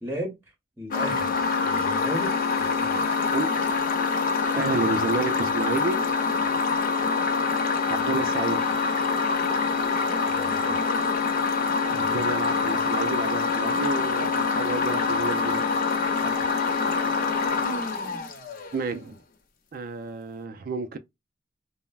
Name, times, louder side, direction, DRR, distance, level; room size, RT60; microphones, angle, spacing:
voice 1, 0.0-0.3 0.8-3.1 6.3-6.5 10.3-10.9 16.2-16.4, equal, 15° right, 0.8 m, -36 dB
sound 1, 0.9-18.9, left 4 dB, 55° left, 0.6 m, -25 dB
voice 2, 4.6-6.1 7.9-8.7 11.9-15.7 18.7-19.2 19.7-21.0, right 3 dB, 55° right, 0.4 m, -30 dB
3.2 x 2.1 x 2.2 m
head